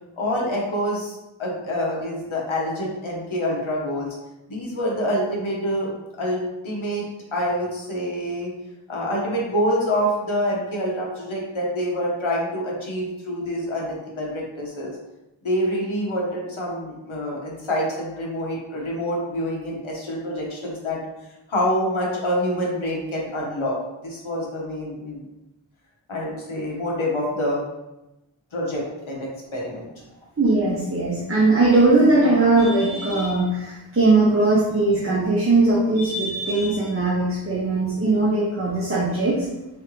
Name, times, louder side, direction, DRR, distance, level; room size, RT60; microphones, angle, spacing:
voice 1, 0.2-4.1 4.5-5.9 6.2-8.5 8.9-15.0 15.4-21.0 21.5-23.8 24.0-25.2 26.1-27.6 28.5-29.9, equal, 85° left, -3 dB, 1.1 m, -26 dB
voice 2, 30.4-39.5, right 2 dB, 30° right, -6 dB, 0.8 m, -19 dB
3.6 x 3.3 x 3.1 m, 0.98 s
wide cardioid pair, 50°, 47 cm